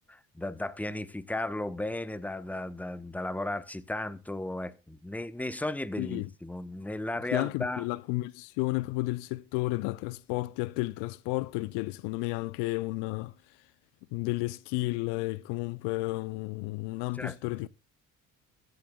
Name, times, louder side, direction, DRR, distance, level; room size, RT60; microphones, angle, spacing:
voice 1, 0.1-7.8 17.2-17.4 17.6-17.7, left 1 dB, 5° left, 1.0 m, -35 dB
voice 2, 6.0-6.3 7.3-13.3 14.1-17.7, left 21 dB, 70° left, 0.6 m, -32 dB
22.5 x 8.0 x 2.2 m
hypercardioid pair, 55°, 43 cm